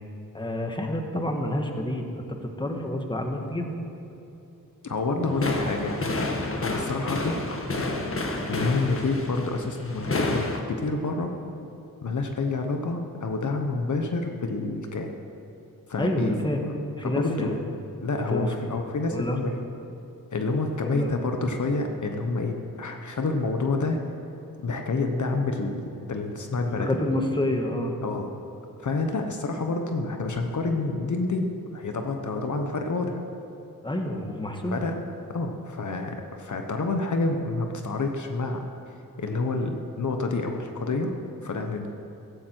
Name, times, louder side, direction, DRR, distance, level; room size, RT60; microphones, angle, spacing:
voice 1, 0.3-3.8 5.2-5.3 16.0-16.6 17.0-17.6 18.3-18.5 19.1-19.4 20.8-21.1 26.6-28.0 33.8-34.8, left 1 dB, 15° left, 3 dB, 1.6 m, -28 dB
voice 2, 4.8-6.1 6.5-7.4 8.4-11.3 12.0-15.2 15.9-16.4 16.6-16.7 17.0-17.5 18.0-19.6 20.3-24.0 24.6-25.8 26.1-26.9 28.0-28.3 28.8-31.5 31.7-33.2 34.6-35.0 35.3-41.1 41.4-41.9, left 3 dB, 55° left, 4 dB, 1.1 m, -28 dB
sound 1, 5.3-10.6, left 2 dB, 40° left, 1.6 m, -29 dB
16.5 x 15.5 x 4.6 m, 2.9 s
wide cardioid pair, 95°, 35 cm